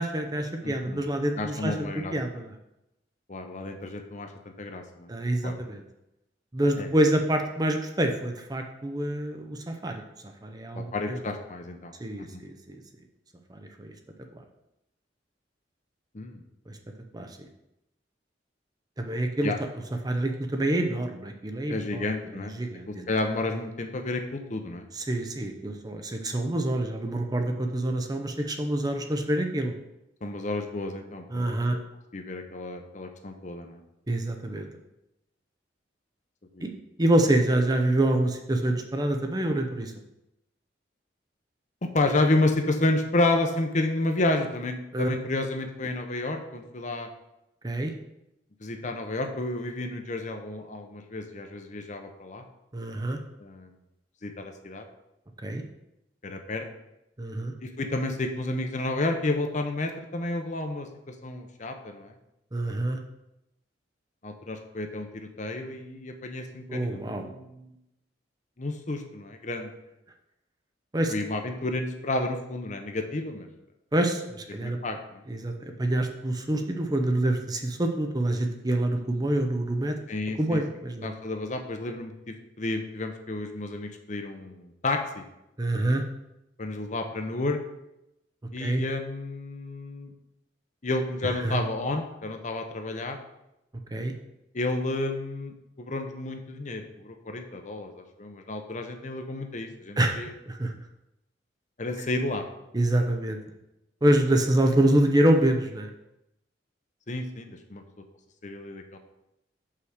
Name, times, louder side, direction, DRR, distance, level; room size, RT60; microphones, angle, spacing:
voice 1, 0.0-2.5 5.1-5.8 6.5-11.2 12.0-12.8 13.5-13.9 14.3-14.4 16.7-16.8 17.1-17.5 19.0-19.5 20.0-23.1 24.9-29.7 31.3-31.8 34.1-34.7 36.6-36.7 37.0-39.9 44.9-45.1 47.6-47.9 52.7-53.2 55.4-55.6 57.2-57.5 62.5-63.0 66.7-67.2 70.9-71.1 73.9-74.8 75.3-80.0 80.4-81.1 85.6-86.0 88.6-88.8 91.2-91.6 93.9-94.1 100.0-100.2 100.5-100.7 102.7-103.4 104.0-105.9, right 1 dB, 20° right, 4 dB, 0.6 m, -26 dB
voice 2, 0.6-1.0 1.4-2.1 3.3-4.3 4.6-5.1 5.4-5.5 6.8-6.9 10.7-12.4 16.1-16.4 19.4-19.6 21.7-22.5 22.9-24.9 30.2-31.8 32.1-33.8 36.5-36.7 41.8-47.1 48.6-52.4 53.4-53.7 54.2-54.9 56.2-56.7 57.6-62.1 64.2-67.7 68.6-69.7 71.1-73.5 74.6-75.2 75.6-75.8 80.1-80.6 81.0-85.2 86.6-87.6 88.5-90.1 90.8-93.2 94.5-100.3 101.8-102.4 107.1-107.8 108.4-109.0, left 2 dB, 40° left, 5 dB, 0.8 m, -31 dB
5.7 x 4.8 x 6.5 m, 0.88 s
head